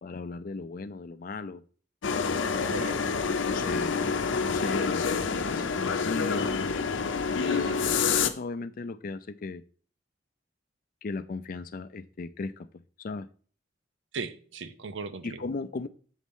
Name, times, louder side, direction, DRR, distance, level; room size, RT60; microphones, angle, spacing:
voice 1, 0.0-1.6 3.5-4.1 4.4-6.9 7.9-9.6 11.0-12.7 13.0-13.3 15.2-15.9, left 3 dB, 50° left, 0.4 m, -36 dB
sound 1, 2.0-8.3, left 5 dB, 90° left, 0.6 m, -27 dB
voice 2, 7.5-7.8 14.1-15.4, right 4 dB, 80° right, 0.7 m, -37 dB
7.3 x 4.2 x 5.4 m
head